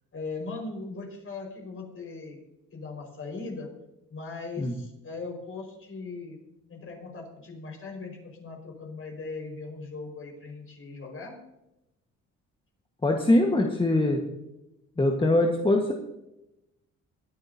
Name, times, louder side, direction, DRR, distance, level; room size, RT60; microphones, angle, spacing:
voice 1, 0.1-2.4 2.7-3.7 4.1-6.4 6.7-11.4, left 3 dB, 45° left, 1 dB, 5.3 m, -39 dB
voice 2, 13.0-14.2 15.0-15.9, left 1 dB, 15° left, 1 dB, 1.6 m, -22 dB
21.5 x 10.5 x 2.9 m, 0.90 s
cardioid pair, 90°, 30 cm